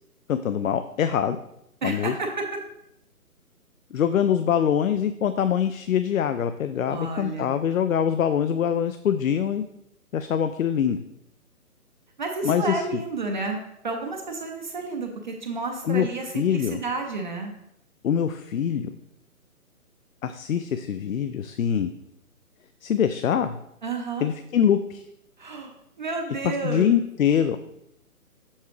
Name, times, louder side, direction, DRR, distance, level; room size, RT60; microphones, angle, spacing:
voice 1, 0.3-1.4 1.8-2.1 3.9-9.6 10.1-11.0 12.4-12.8 15.8-16.1 16.3-16.8 18.0-18.9 20.2-21.9 22.8-23.6 24.2-25.0 26.6-27.6, left 8 dB, 65° left, 10 dB, 0.5 m, -24 dB
voice 2, 1.8-2.5 6.9-7.6 12.2-13.6 13.8-17.5 23.8-24.3 25.4-25.7 26.0-26.9, right 3 dB, 30° right, 2 dB, 0.7 m, -31 dB
7.2 x 5.7 x 3.1 m, 0.80 s
figure-of-eight pair, 145°, 44 cm